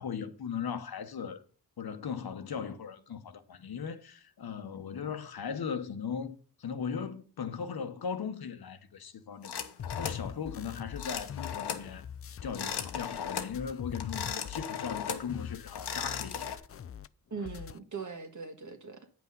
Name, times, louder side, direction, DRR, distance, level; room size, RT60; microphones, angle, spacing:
voice 1, 0.0-1.4 1.8-9.6 10.0-12.1 12.4-16.6, left 6 dB, 65° left, 1.0 m, -38 dB
sound 1, 9.4-10.3 11.0-11.9 12.4-13.6 14.0-15.3 15.7-16.6, left 8 dB, 85° left, 1.0 m, -37 dB
sound 2, 9.8-17.1 17.3-17.8, left 8 dB, 35° left, 0.4 m, -43 dB
voice 2, 17.3-19.2, right 5 dB, 50° right, 1.7 m, -41 dB
8.9 x 5.9 x 5.4 m
cardioid pair, 55°, 39 cm